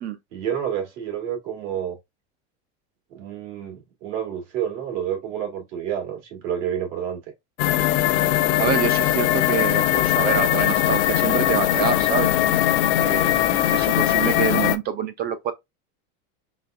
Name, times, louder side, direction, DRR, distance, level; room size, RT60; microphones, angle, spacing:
voice 1, 0.3-2.0 3.1-7.2, right 9 dB, 80° right, 2.1 m, -29 dB
sound 1, 7.6-14.8, left 13 dB, 80° left, 0.6 m, -20 dB
voice 2, 8.6-12.3 12.8-15.5, right 8 dB, 30° right, 0.4 m, -27 dB
4.0 x 3.3 x 2.4 m
supercardioid pair, 145°, 34 cm